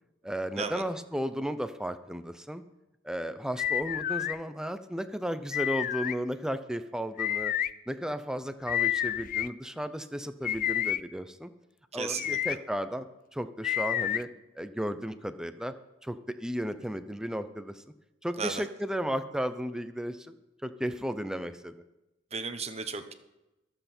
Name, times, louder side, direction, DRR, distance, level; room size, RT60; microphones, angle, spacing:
voice 1, 0.2-2.6 3.0-7.5 7.9-11.5 11.9-13.1 13.3-14.3 14.6-15.7 16.0-17.8 18.2-20.3 20.6-21.8, equal, 5° right, 10 dB, 0.6 m, -34 dB
sound 1, 3.6-4.4 5.5-6.1 7.2-7.7 8.7-9.5 10.4-11.0 12.0-12.6 13.6-14.2, left 11 dB, 45° left, 0.4 m, -29 dB
voice 2, 11.9-12.4 18.4-18.6 22.3-23.1, right 5 dB, 35° right, 8 dB, 1.0 m, -35 dB
23.5 x 8.0 x 4.4 m, 0.96 s
head